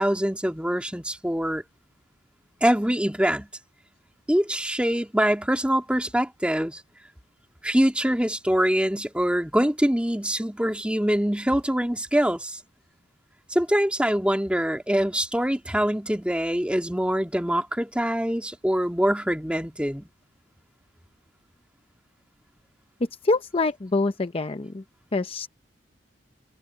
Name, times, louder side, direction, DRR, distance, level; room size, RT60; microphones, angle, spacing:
voice 1, 0.0-1.6 2.6-3.5 4.3-6.8 7.6-12.6 13.5-20.1, equal, 5° right, 2.2 m, -24 dB
voice 2, 23.2-24.8 25.1-25.5, left 3 dB, 35° left, 0.6 m, -25 dB
head